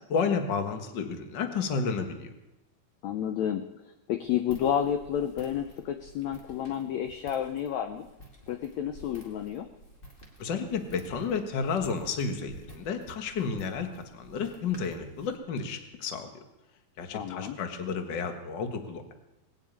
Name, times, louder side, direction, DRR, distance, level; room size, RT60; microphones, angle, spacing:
voice 1, 0.1-2.3 10.4-16.3 17.0-19.1, left 5 dB, 50° left, 5 dB, 1.4 m, -31 dB
voice 2, 3.0-8.1 8.5-9.7 17.1-17.6, left 9 dB, 75° left, 7 dB, 1.6 m, -31 dB
Walk footsteps, 4.2-15.3, equal, 25° left, 1.2 m, -52 dB
20.0 x 7.4 x 8.7 m, 0.97 s
omnidirectional pair, 4.0 m